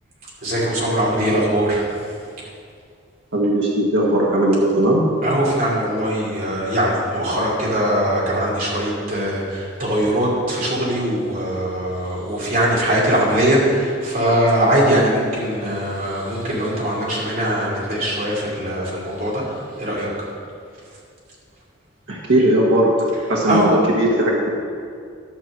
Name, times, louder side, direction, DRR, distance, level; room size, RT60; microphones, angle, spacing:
voice 1, 0.4-1.8 5.2-19.4 19.8-20.1 23.5-23.7, right 1 dB, 45° right, -5 dB, 2.7 m, -21 dB
voice 2, 3.3-5.0 22.1-24.5, right 1 dB, 70° right, -4 dB, 1.3 m, -18 dB
11.5 x 4.5 x 7.3 m, 2.2 s
head